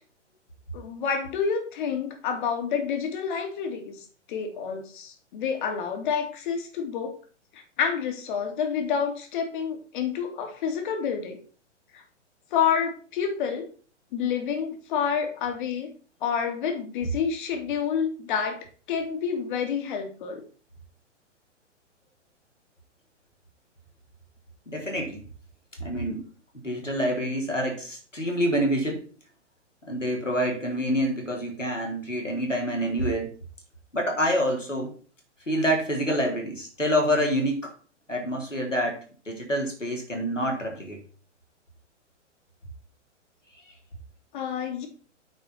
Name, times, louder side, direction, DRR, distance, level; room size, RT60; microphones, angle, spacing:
voice 1, 0.7-7.1 7.5-11.4 11.9-12.0 12.5-13.7 14.1-15.9 16.2-20.4 44.3-44.9, left 7 dB, 40° left, 4 dB, 2.5 m, -28 dB
voice 2, 24.7-25.2 25.8-26.3 26.5-29.1 29.8-33.3 33.9-34.9 35.5-37.7 38.1-39.0 39.3-41.0, equal, 90° left, 1 dB, 3.7 m, -27 dB
8.9 x 4.8 x 5.7 m, 0.40 s
figure-of-eight pair, 115°, 36 cm